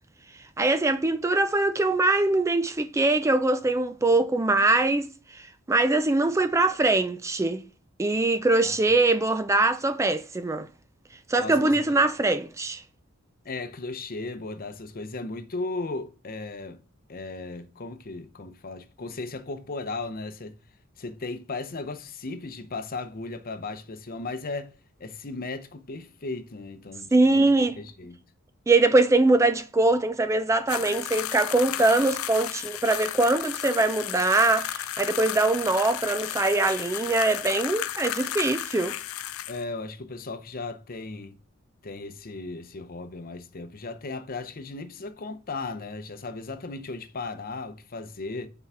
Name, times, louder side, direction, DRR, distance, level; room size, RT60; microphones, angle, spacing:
voice 1, 0.6-5.4 5.7-7.6 8.0-10.7 11.3-12.8 27.1-27.8 28.7-39.0, right 2 dB, 15° right, 0.3 m, -22 dB
voice 2, 11.4-12.0 13.4-16.8 17.1-20.6 21.0-24.7 25.0-27.4 27.8-28.2 39.5-41.4 41.8-48.5, left 3 dB, 45° left, 0.8 m, -36 dB
sound 1, 30.7-39.6, left 12 dB, 90° left, 0.4 m, -34 dB
5.9 x 4.6 x 5.6 m
head